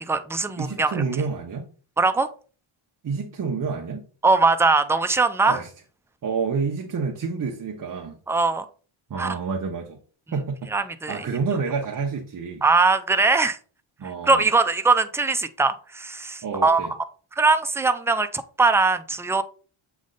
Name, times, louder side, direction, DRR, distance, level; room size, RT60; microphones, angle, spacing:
voice 1, 0.0-1.0 2.0-2.3 4.2-5.6 8.3-8.7 9.2-9.4 10.7-11.2 12.6-13.6 14.2-16.9 17.4-19.4, right 3 dB, 5° right, 0.4 m, -21 dB
voice 2, 0.6-1.7 3.0-4.0 5.5-5.7 6.2-8.2 9.1-10.0 10.3-10.7 11.1-12.6 14.0-14.5 16.4-16.9, right 5 dB, 40° right, 0.9 m, -28 dB
7.4 x 3.5 x 3.9 m
cardioid pair, 120°, 50 cm